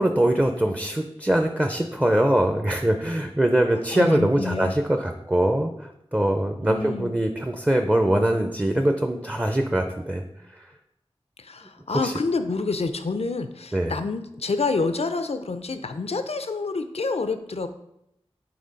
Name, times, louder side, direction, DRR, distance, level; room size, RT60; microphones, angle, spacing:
voice 1, 0.0-10.2 10.5-10.7 11.9-12.1 13.7-13.9, right 1 dB, 15° right, 5 dB, 0.6 m, -23 dB
voice 2, 3.9-4.7 6.6-7.1 11.4-17.7, left 3 dB, 75° left, 9 dB, 0.5 m, -28 dB
7.7 x 3.4 x 5.2 m, 0.81 s
wide cardioid pair, 50°, 11 cm